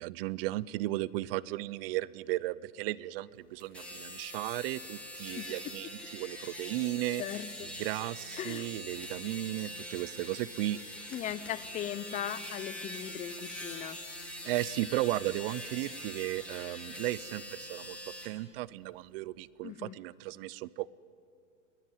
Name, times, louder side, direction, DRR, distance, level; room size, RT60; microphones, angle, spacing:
voice 1, 0.0-7.2 7.6-10.8 14.2-18.0 18.2-20.9, right 17 dB, 45° right, 21 dB, 0.6 m, -35 dB
sound 1, 3.6-18.3, left 1 dB, 5° left, 4.0 m, -43 dB
voice 2, 8.4-8.7 11.1-14.0 19.6-20.0, left 11 dB, 20° left, 16 dB, 0.6 m, -38 dB
22.0 x 16.5 x 9.2 m, 2.3 s
hypercardioid pair, 130°, 40 cm